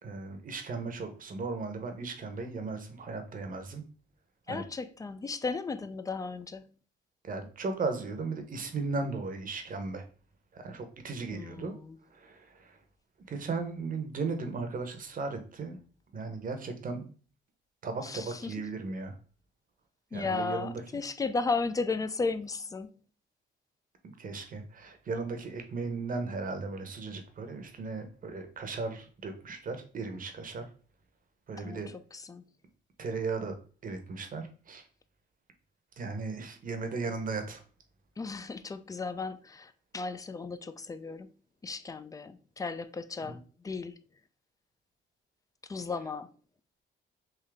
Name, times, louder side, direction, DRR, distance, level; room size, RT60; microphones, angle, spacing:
voice 1, 0.0-3.8 4.5-4.6 7.2-10.0 10.5-11.7 12.1-12.8 13.3-15.8 16.1-17.1 17.8-19.2 20.1-20.8 24.0-30.6 31.5-31.9 33.0-33.5 33.8-34.8 36.0-37.6 43.2-43.4, right 4 dB, 45° right, 0.9 m, -36 dB
voice 2, 4.5-6.6 11.3-12.0 18.0-18.6 20.1-22.9 31.6-32.4 38.2-41.3 41.6-43.4 43.6-44.0 45.7-46.3, left 4 dB, 20° left, 0.3 m, -35 dB
3.7 x 2.7 x 3.3 m
cardioid pair, 90°, 20 cm